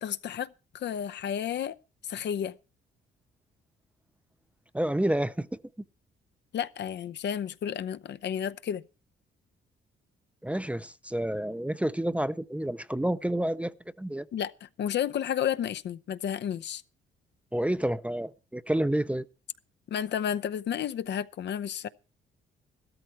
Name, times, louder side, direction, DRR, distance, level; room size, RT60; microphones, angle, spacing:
voice 1, 0.0-0.5 0.7-1.8 2.1-2.5 6.5-8.8 14.3-16.8 19.9-21.9, left 9 dB, 60° left, 0.7 m, -31 dB
voice 2, 4.7-5.5 10.4-14.3 17.5-19.3, right 1 dB, 5° right, 0.6 m, -29 dB
13.5 x 13.0 x 4.5 m
cardioid pair, 90°, 20 cm